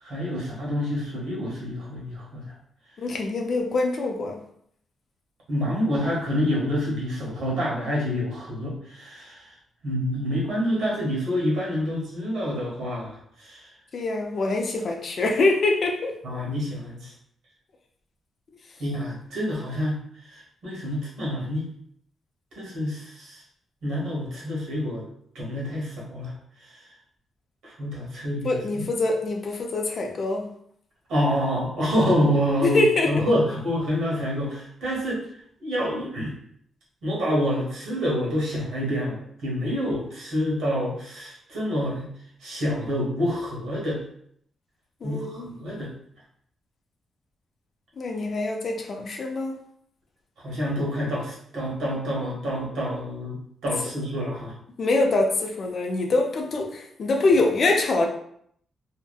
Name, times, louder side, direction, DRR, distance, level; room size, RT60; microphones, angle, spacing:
voice 1, 0.0-2.4 5.5-9.4 9.8-13.6 16.2-17.1 18.8-20.0 20.3-21.7 22.5-23.4 23.8-25.0 25.3-26.3 27.6-28.8 31.1-35.2 35.6-36.3 37.0-42.1 42.4-44.0 45.0-45.9 50.4-54.5, equal, 90° right, -4 dB, 1.1 m, -27 dB
voice 2, 3.0-4.4 13.9-16.2 28.4-30.5 32.6-33.2 45.0-45.5 48.0-49.5 54.8-58.1, left 2 dB, 45° left, 3 dB, 0.4 m, -24 dB
2.7 x 2.1 x 2.3 m, 0.67 s
cardioid pair, 130°, 0 cm